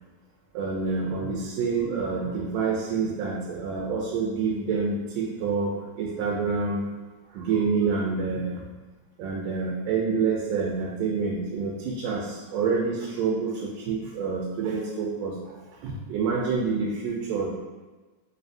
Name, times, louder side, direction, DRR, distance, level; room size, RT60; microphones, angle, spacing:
voice 1, 0.6-6.9 7.3-8.6 9.2-15.6 15.8-17.5, right 5 dB, 85° right, -2 dB, 2.0 m, -27 dB
5.2 x 2.7 x 2.5 m, 1.3 s
omnidirectional pair, 3.5 m